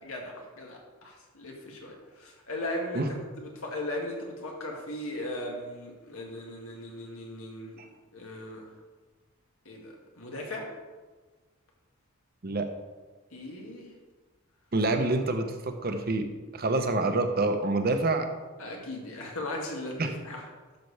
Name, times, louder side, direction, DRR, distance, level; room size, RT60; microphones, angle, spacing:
voice 1, 0.0-7.8 8.1-8.7 9.7-10.7 13.3-13.9 18.6-20.4, left 1 dB, 85° left, -1 dB, 2.0 m, -38 dB
voice 2, 14.7-16.3 16.5-18.3 20.0-20.1, right 2 dB, 45° right, 7 dB, 0.8 m, -27 dB
12.0 x 6.8 x 3.4 m, 1.3 s
head